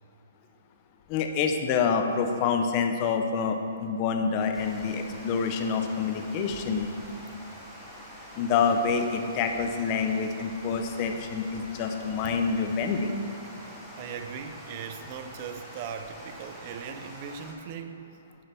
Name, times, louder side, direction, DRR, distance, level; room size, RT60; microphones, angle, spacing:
voice 1, 1.1-6.9 8.4-13.1, left 5 dB, 30° left, 6 dB, 0.6 m, -27 dB
Water, 4.5-17.5, equal, ahead, 1.0 m, -46 dB
voice 2, 13.5-18.0, right 7 dB, 35° right, 7 dB, 0.5 m, -39 dB
10.5 x 5.5 x 3.4 m, 2.6 s
hypercardioid pair, 160°, 0 cm